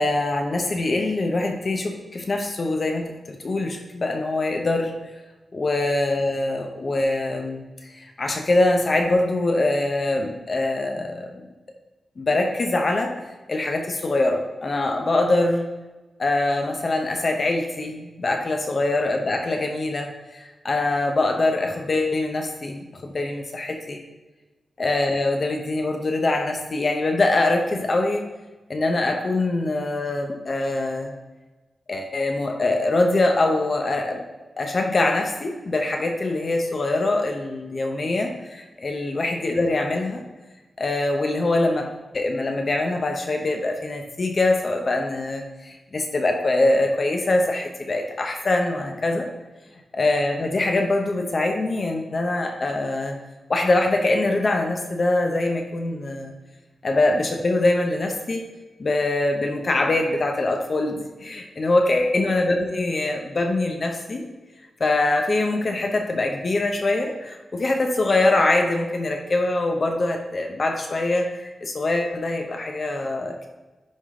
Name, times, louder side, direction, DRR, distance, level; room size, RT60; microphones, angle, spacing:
voice 1, 0.0-4.9 5.5-11.3 12.2-13.1 13.5-15.7 16.2-24.0 24.8-28.2 28.7-31.1 31.9-34.2 34.6-40.2 40.8-41.9 42.1-49.3 49.9-53.2 53.5-56.3 56.8-58.4 58.8-64.2 64.8-73.5, left 2 dB, 45° left, 3 dB, 0.8 m, -23 dB
10.5 x 3.7 x 3.7 m, 1.2 s
wide cardioid pair, 95°, 0 cm